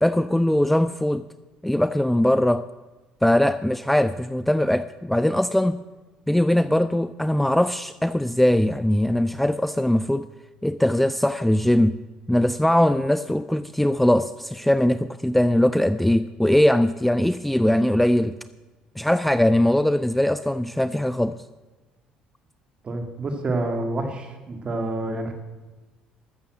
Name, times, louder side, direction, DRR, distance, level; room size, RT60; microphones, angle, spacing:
voice 1, 0.0-1.3 1.6-2.7 3.2-5.8 6.3-10.3 10.6-12.0 12.3-18.4 19.0-21.4, left 1 dB, 5° left, 0.4 m, -21 dB
voice 2, 22.8-25.3, right 2 dB, 40° right, 2.2 m, -28 dB
13.0 x 7.0 x 7.7 m
supercardioid pair, 80°, 3 cm